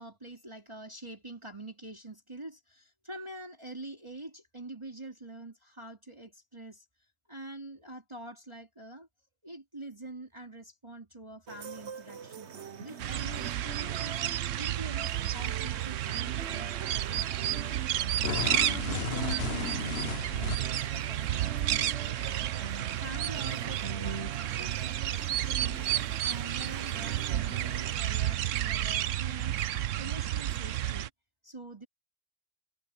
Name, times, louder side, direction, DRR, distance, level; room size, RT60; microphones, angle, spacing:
voice 1, 0.0-9.1 9.4-12.5 12.8-17.8 18.2-22.7 23.0-29.6 30.0-31.1 31.4-31.9, right 2 dB, 25° right, 3.2 m, -46 dB
sound 1, 11.5-27.9, right 7 dB, 65° right, 1.4 m, -42 dB
sound 2, 13.0-31.1, right 12 dB, 90° right, 1.0 m, -31 dB
sound 3, 18.2-20.9, left 9 dB, 60° left, 1.0 m, -35 dB
omnidirectional pair, 1.3 m